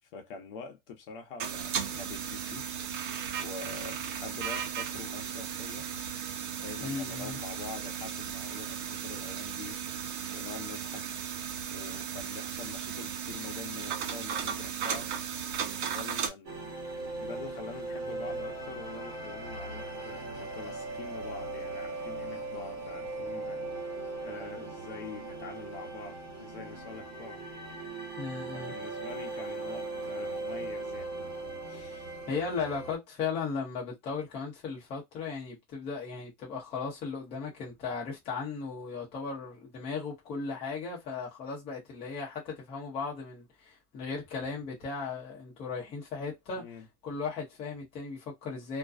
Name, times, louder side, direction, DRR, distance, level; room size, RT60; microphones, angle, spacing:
voice 1, 0.1-2.8 3.4-5.9 6.6-9.8 10.3-11.1 11.7-15.1 15.5-16.6 17.2-23.6 24.2-27.4 28.5-31.1 31.6-32.2 46.5-46.9, left 5 dB, 65° left, 0.9 m, -45 dB
sound 1, 1.4-16.3, right 8 dB, 55° right, 0.6 m, -36 dB
voice 2, 6.8-7.4 28.2-28.7 32.3-46.6 47.0-48.8, left 5 dB, 20° left, 0.8 m, -36 dB
sound 2, 16.4-32.9, right 2 dB, 30° right, 1.1 m, -39 dB
2.5 x 2.2 x 2.4 m
supercardioid pair, 175°, 29 cm